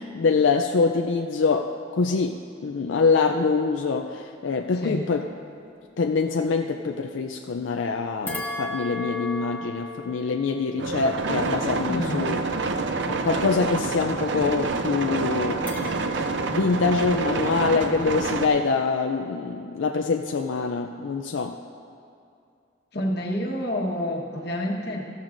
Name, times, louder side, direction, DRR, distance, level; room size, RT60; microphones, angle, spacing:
voice 1, 0.0-5.2 6.0-12.4 13.0-15.6 16.5-21.6, left 4 dB, 90° left, 4 dB, 0.4 m, -24 dB
voice 2, 4.7-5.1 11.9-12.2 22.9-25.0, equal, 55° left, 0 dB, 1.3 m, -28 dB
sound 1, 8.3-12.7 15.7-18.2, left 3 dB, 10° left, 1.1 m, -37 dB
sound 2, 10.8-18.5, right 3 dB, 70° right, 0.6 m, -27 dB
15.5 x 13.0 x 2.6 m, 2.4 s
head